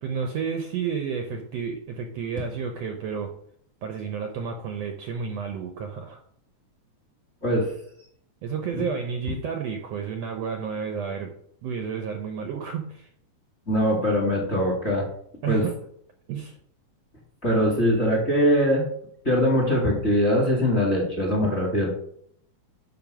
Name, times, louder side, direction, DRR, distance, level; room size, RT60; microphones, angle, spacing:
voice 1, 0.0-3.3 3.8-6.2 8.4-11.3 11.6-13.1 15.4-15.8 16.3-16.6, right 6 dB, 70° right, 4 dB, 1.6 m, -31 dB
voice 2, 13.7-15.1 15.5-15.6 17.4-18.8 19.2-21.9, equal, 25° left, -2 dB, 2.1 m, -22 dB
10.0 x 3.5 x 6.0 m, 0.66 s
omnidirectional pair, 3.6 m